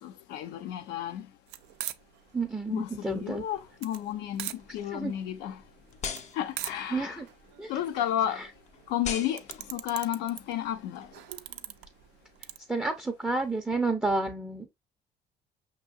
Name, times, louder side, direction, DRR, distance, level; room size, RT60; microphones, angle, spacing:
voice 1, 0.0-1.3 2.7-5.6 6.3-7.2 7.7-8.4 8.9-9.4 9.7-11.1, left 11 dB, 90° left, 0.6 m, -32 dB
sound 1, 1.5-12.6, right 14 dB, 85° right, 0.4 m, -43 dB
voice 2, 2.3-3.4 4.9-5.1 6.9-7.3 7.6-7.7 8.3-8.5 12.7-14.7, right 3 dB, 5° right, 0.5 m, -30 dB
sound 2, 3.5-7.7 8.1-11.5, left 6 dB, 45° left, 0.5 m, -44 dB
5.4 x 3.0 x 2.5 m
cardioid pair, 110°, 17 cm